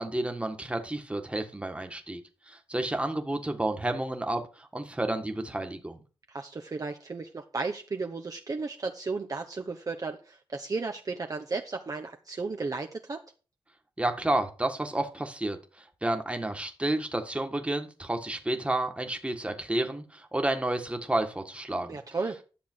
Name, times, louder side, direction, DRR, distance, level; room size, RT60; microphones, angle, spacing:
voice 1, 0.0-6.0 14.0-15.6 16.0-22.0, right 1 dB, 15° right, 5 dB, 1.7 m, -30 dB
voice 2, 6.3-13.2 21.9-22.4, right 4 dB, 40° right, 3 dB, 1.0 m, -34 dB
11.0 x 6.9 x 4.6 m, 0.35 s
wide cardioid pair, 85°, 9 cm